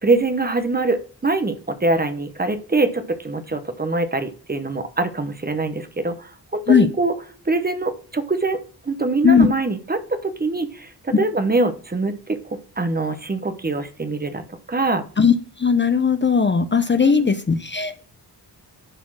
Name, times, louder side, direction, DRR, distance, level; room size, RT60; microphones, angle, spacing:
voice 1, 0.0-7.1 7.4-8.6 8.8-14.4 14.7-15.0 17.0-17.4, right 3 dB, 25° right, 9 dB, 0.8 m, -23 dB
voice 2, 15.6-18.0, left 6 dB, 30° left, 10 dB, 0.6 m, -17 dB
11.0 x 4.2 x 6.2 m, 0.41 s
wide cardioid pair, 140°, 40 cm